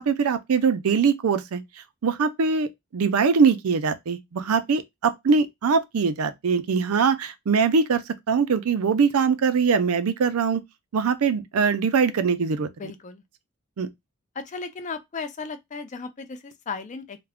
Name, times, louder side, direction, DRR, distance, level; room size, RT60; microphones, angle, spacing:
voice 1, 0.0-1.6 2.0-10.6 10.9-12.7 13.8-13.9, right 5 dB, 85° right, 0.4 m, -22 dB
voice 2, 12.8-13.2 14.3-17.2, left 4 dB, 35° left, 0.4 m, -35 dB
2.4 x 2.1 x 3.4 m
head